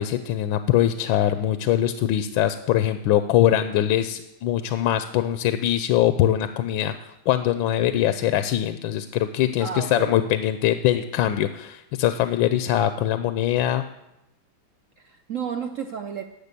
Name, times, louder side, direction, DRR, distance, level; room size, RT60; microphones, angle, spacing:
voice 1, 0.0-13.8, left 12 dB, 80° left, 10 dB, 1.3 m, -22 dB
voice 2, 9.6-10.1 15.0-16.2, right 7 dB, 75° right, 6 dB, 0.7 m, -32 dB
12.0 x 6.7 x 8.2 m, 0.88 s
omnidirectional pair, 2.1 m